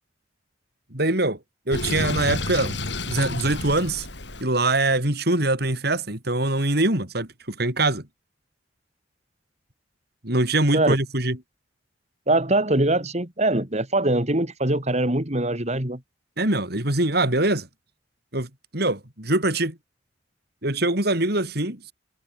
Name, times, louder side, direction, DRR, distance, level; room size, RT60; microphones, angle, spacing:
voice 1, 0.9-1.4 1.7-2.8 3.1-4.1 4.4-8.0 10.2-11.4 16.4-17.7 18.3-19.8 20.6-21.9, right 2 dB, 60° right, 5.7 m, -23 dB
Sink (filling or washing), 1.7-4.4, left 2 dB, 70° left, 8.0 m, -30 dB
voice 2, 12.3-16.0, right 2 dB, 40° right, 3.4 m, -22 dB
head